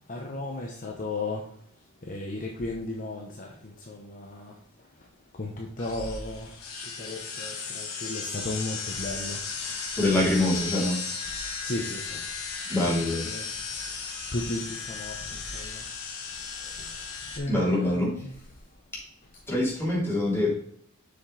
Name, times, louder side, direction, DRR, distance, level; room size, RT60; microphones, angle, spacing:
voice 1, 0.1-1.5 2.0-4.6 5.0-5.1 5.3-6.5 6.8-9.4 10.1-10.6 11.4-12.2 13.0-15.9 16.4-18.3, left 2 dB, 40° left, 0.9 m, -36 dB
sound 1, 5.8-17.4, left 5 dB, 80° left, 1.9 m, -36 dB
voice 2, 10.0-11.0 12.7-13.2 17.5-18.2 19.5-20.5, left 1 dB, 10° left, 3.5 m, -24 dB
7.4 x 6.4 x 3.4 m
head